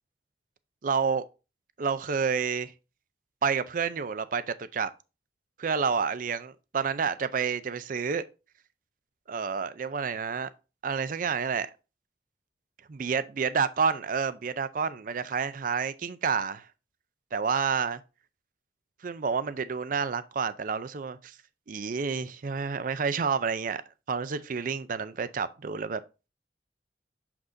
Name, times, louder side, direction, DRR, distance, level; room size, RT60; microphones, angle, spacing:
voice 1, 0.8-1.3 1.8-2.7 3.4-4.9 5.6-8.2 9.3-10.5 10.8-11.7 12.9-16.7 17.3-18.0 19.0-21.4 21.7-23.8 24.1-26.0, right 6 dB, 50° right, 0.4 m, -29 dB
6.5 x 5.9 x 2.6 m
head